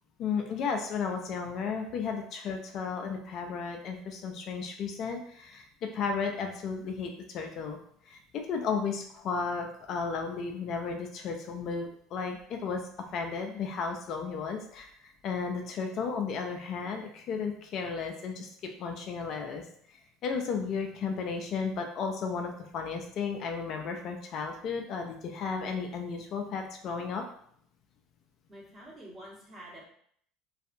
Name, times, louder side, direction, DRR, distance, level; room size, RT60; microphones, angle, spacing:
voice 1, 0.2-5.7 5.9-7.8 8.1-12.8 13.1-18.5 18.8-19.6 20.2-27.2, left 5 dB, 55° left, 3 dB, 0.4 m, -34 dB
voice 2, 28.5-29.9, right 1 dB, 30° right, -5 dB, 1.3 m, -47 dB
2.6 x 2.3 x 2.6 m, 0.64 s
hypercardioid pair, 75°, 0 cm